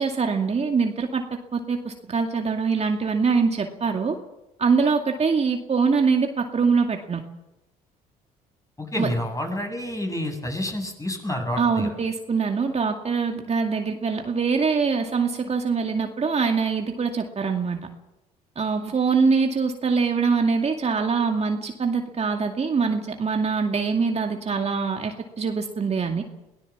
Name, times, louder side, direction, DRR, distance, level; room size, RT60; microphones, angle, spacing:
voice 1, 0.0-4.2 4.6-7.2 8.9-9.1 11.6-17.8 18.6-26.2, right 5 dB, 35° right, 3 dB, 2.3 m, -23 dB
voice 2, 8.8-11.9, left 1 dB, 20° left, 4 dB, 8.0 m, -29 dB
23.0 x 17.5 x 7.3 m, 0.95 s
hypercardioid pair, 60°, 18 cm